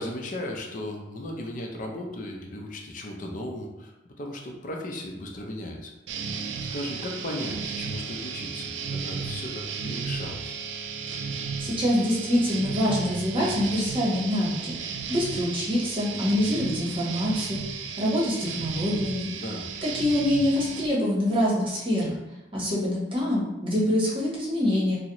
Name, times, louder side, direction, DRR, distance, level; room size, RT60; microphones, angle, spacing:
voice 1, 0.0-5.9 6.7-10.5 19.3-19.7, left 1 dB, 45° left, 1 dB, 0.5 m, -36 dB
sound 1, 6.1-20.9, right 5 dB, 80° right, 0.3 m, -34 dB
voice 2, 11.6-14.7 15.1-17.6 18.0-19.3 19.9-22.1 22.5-25.0, left 1 dB, 30° right, -5 dB, 0.9 m, -25 dB
3.9 x 2.0 x 2.9 m, 1.0 s
head